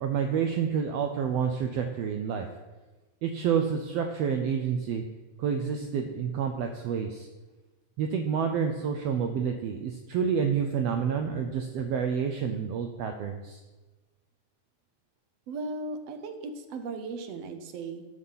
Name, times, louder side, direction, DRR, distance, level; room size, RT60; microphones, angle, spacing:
voice 1, 0.0-2.5 3.2-5.0 5.4-7.3 8.0-13.6, right 7 dB, 85° right, 5 dB, 1.4 m, -29 dB
voice 2, 15.5-18.1, right 3 dB, 70° right, 7 dB, 1.6 m, -37 dB
12.5 x 6.4 x 5.6 m, 1.2 s
omnidirectional pair, 3.7 m